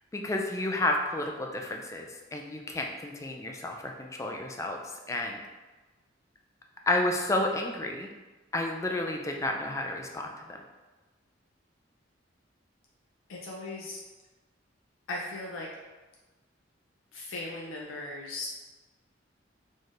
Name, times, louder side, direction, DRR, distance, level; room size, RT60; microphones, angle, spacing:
voice 1, 0.1-5.4 6.9-8.1 8.5-10.6, left 1 dB, 15° left, 2 dB, 0.3 m, -31 dB
voice 2, 13.3-14.0 15.1-15.7 17.1-18.6, left 2 dB, 90° left, -3 dB, 0.5 m, -37 dB
4.2 x 3.2 x 2.5 m, 1.2 s
head